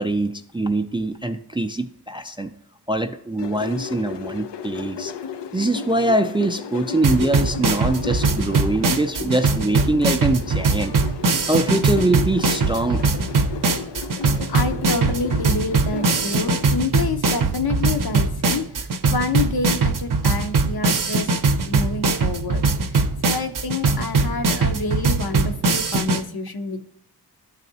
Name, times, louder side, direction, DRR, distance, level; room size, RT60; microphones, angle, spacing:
voice 1, 0.0-2.5 2.9-5.1 5.5-10.9 11.5-13.0, right 2 dB, 15° right, 7 dB, 0.3 m, -23 dB
sound 1, 3.4-16.7, left 6 dB, 90° left, 0.5 m, -34 dB
sound 2, 7.0-26.2, right 3 dB, 50° right, 0.6 m, -21 dB
voice 2, 14.5-22.9 23.2-26.9, left 3 dB, 65° left, 6 dB, 0.8 m, -28 dB
12.0 x 4.1 x 2.8 m, 0.76 s
wide cardioid pair, 80°, 40 cm